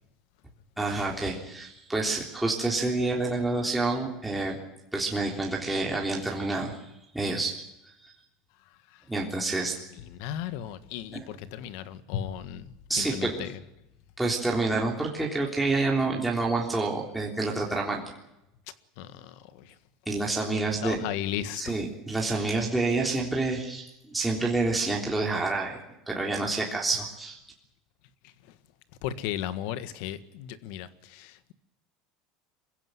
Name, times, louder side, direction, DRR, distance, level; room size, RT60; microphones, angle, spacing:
voice 1, 0.8-4.6 4.9-6.8 7.1-7.6 8.0-8.1 9.1-9.8 11.1-11.2 12.9-13.5 14.2-18.0 20.1-21.0 21.6-25.8 26.1-27.4, right 3 dB, 5° right, 3.6 m, -28 dB
voice 2, 10.2-12.7 13.0-13.5 19.0-19.3 20.4-21.8 29.0-31.5, left 10 dB, 70° left, 1.6 m, -35 dB
23.0 x 16.0 x 9.7 m
supercardioid pair, 135°, 0 cm